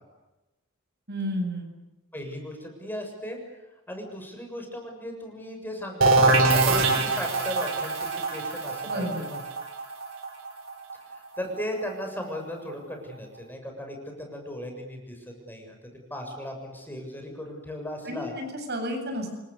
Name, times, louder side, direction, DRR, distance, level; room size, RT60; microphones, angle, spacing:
voice 1, 1.1-1.7 8.9-9.2 18.1-19.4, equal, 55° right, 4 dB, 7.7 m, -31 dB
voice 2, 2.1-3.4 3.9-9.4 11.1-15.8 16.1-18.3, equal, 10° left, 3 dB, 6.9 m, -37 dB
sound 1, 6.0-11.6, right 3 dB, 85° right, 4.6 m, -24 dB
29.0 x 25.5 x 6.8 m, 1.0 s
head